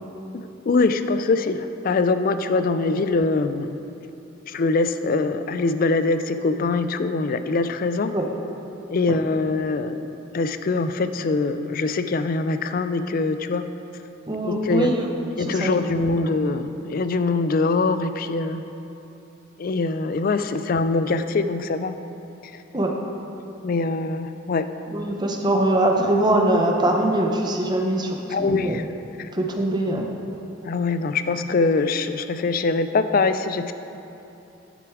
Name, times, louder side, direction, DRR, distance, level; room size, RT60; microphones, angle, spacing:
voice 1, 0.3-3.8 4.5-8.1 8.9-10.1 10.3-13.6 14.4-14.9 15.4-18.6 19.6-22.0 23.6-24.7 28.3-28.9 29.2-29.3 30.6-33.7, left 3 dB, 45° left, 10 dB, 0.3 m, -23 dB
voice 2, 14.3-15.1 15.5-15.7 22.7-22.9 24.9-28.8 29.3-30.1, right 1 dB, 20° right, 1 dB, 0.8 m, -22 dB
9.6 x 6.9 x 4.7 m, 2.8 s
head